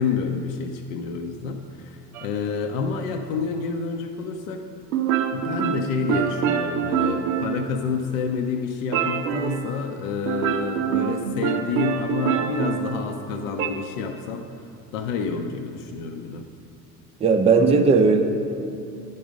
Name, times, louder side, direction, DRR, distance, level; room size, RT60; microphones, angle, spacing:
voice 1, 0.0-4.6 5.3-14.5 14.9-16.5, left 5 dB, 60° left, 4 dB, 0.6 m, -28 dB
sound 1, 2.1-2.3 4.9-8.2 8.9-9.8 10.3-13.7, right 9 dB, 65° right, 0.6 m, -26 dB
voice 2, 17.2-18.2, right 4 dB, 15° right, 5 dB, 0.5 m, -17 dB
9.2 x 5.3 x 5.1 m, 2.5 s
figure-of-eight pair, 60°, 46 cm